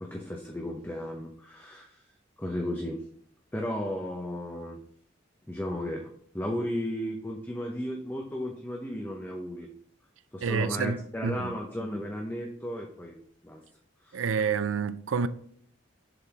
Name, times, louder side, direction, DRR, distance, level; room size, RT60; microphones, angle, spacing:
voice 1, 0.0-2.0 2.4-3.0 3.5-4.8 5.5-9.7 10.3-13.2 13.4-13.6 14.0-14.2, left 1 dB, 10° left, 0.6 m, -34 dB
voice 2, 10.4-11.6 14.1-15.3, right 6 dB, 90° right, 0.4 m, -29 dB
6.9 x 3.8 x 4.7 m
head